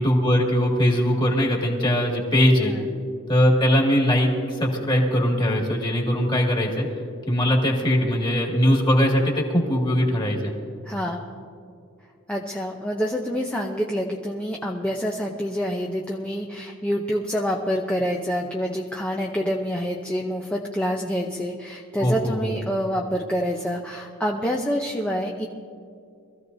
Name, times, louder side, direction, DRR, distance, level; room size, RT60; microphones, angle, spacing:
voice 1, 0.0-2.7 3.3-6.9 7.3-10.5 22.0-22.5, equal, 20° left, -1 dB, 2.1 m, -21 dB
voice 2, 10.8-11.3 12.3-25.5, equal, 5° left, 0 dB, 0.7 m, -27 dB
23.0 x 14.5 x 2.7 m, 2.4 s
head